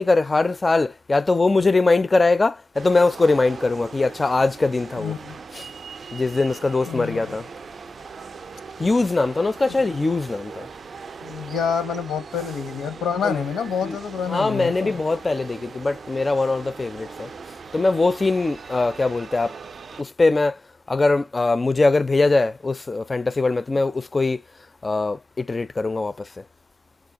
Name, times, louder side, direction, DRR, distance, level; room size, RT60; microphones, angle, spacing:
voice 1, 0.0-5.1 5.5-5.7 6.1-7.5 8.8-10.7 13.2-13.5 13.8-14.0 14.3-17.3 17.7-19.5 20.0-20.6 20.9-24.4 24.8-26.4, left 3 dB, 25° left, 0.4 m, -21 dB
sound 1, 2.7-20.0, right 5 dB, 40° right, 0.4 m, -40 dB
voice 2, 5.0-5.4 6.9-7.4 11.2-15.0, left 7 dB, 75° left, 0.7 m, -27 dB
4.6 x 2.0 x 2.5 m
cardioid pair, 90°, 0 cm